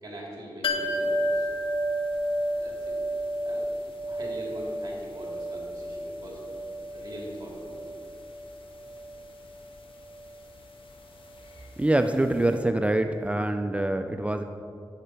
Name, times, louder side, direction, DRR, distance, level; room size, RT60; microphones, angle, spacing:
voice 1, 0.0-1.5 2.5-3.0 3.4-3.7 4.1-6.4 6.9-7.8, right 1 dB, 40° right, -3 dB, 2.3 m, -42 dB
sound 1, 0.6-12.2 12.5-12.6, equal, 75° left, 1.0 m, -32 dB
voice 2, 11.8-14.4, right 1 dB, 15° right, 6 dB, 0.4 m, -25 dB
10.0 x 7.5 x 4.5 m, 2.4 s
wide cardioid pair, 95°, 9 cm